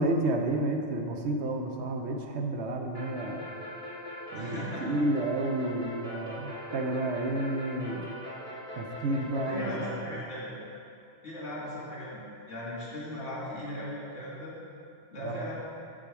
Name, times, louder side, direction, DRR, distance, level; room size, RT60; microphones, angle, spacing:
voice 1, 0.0-3.5 4.3-8.1 8.8-9.7 10.1-10.2 15.2-15.5, right 1 dB, 70° right, 3 dB, 0.9 m, -30 dB
sound 1, 2.9-10.0, equal, 30° left, 2.3 m, -41 dB
voice 2, 4.3-4.9 9.5-10.6 11.2-12.2 12.5-14.6 15.1-15.5, left 1 dB, 70° left, -7 dB, 2.4 m, -37 dB
7.2 x 6.2 x 4.8 m, 2.5 s
omnidirectional pair, 1.3 m